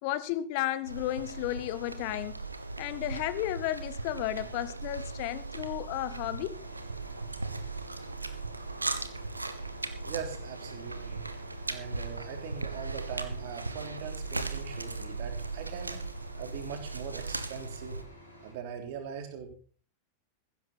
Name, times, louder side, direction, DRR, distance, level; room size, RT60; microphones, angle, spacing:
voice 1, 0.0-2.4 2.8-6.6, left 15 dB, 45° left, 0.9 m, -33 dB
sound 1, 0.9-18.0, right 3 dB, 80° right, 1.3 m, -38 dB
sound 2, 6.5-18.5, equal, 85° left, 5.5 m, -53 dB
voice 2, 10.0-11.2 11.7-16.0 16.3-18.0 18.4-19.5, right 7 dB, 50° right, 3.3 m, -41 dB
15.5 x 12.5 x 4.3 m
figure-of-eight pair, 90°, 0 cm